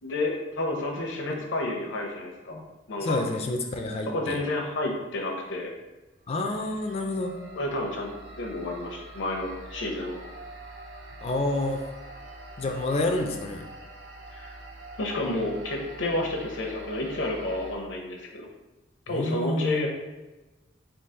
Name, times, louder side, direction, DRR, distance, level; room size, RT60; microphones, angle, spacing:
voice 1, 0.0-2.6 2.9-3.2 4.1-5.7 7.6-10.2 14.3-14.5 15.0-18.5 19.1-19.9, left 2 dB, 80° left, 1 dB, 0.7 m, -30 dB
voice 2, 3.0-4.4 6.3-7.4 11.2-11.8 12.6-13.7 19.1-19.9, left 2 dB, 30° left, 3 dB, 0.3 m, -29 dB
sound 1, 6.2-17.8, right 1 dB, 65° right, 0.5 m, -45 dB
3.9 x 2.4 x 3.7 m, 1.1 s
head